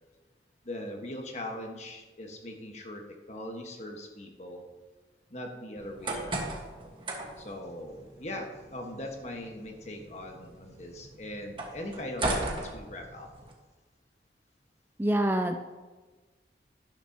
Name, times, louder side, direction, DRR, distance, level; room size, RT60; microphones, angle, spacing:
voice 1, 0.6-3.0 3.3-4.6 5.3-6.5 7.4-13.3, left 1 dB, 40° left, 2 dB, 1.4 m, -40 dB
sound 1, 5.8-13.5, right 2 dB, 30° right, 1.4 m, -38 dB
voice 2, 15.0-15.6, right 1 dB, 10° right, 5 dB, 0.4 m, -25 dB
12.5 x 10.5 x 2.9 m, 1.3 s
head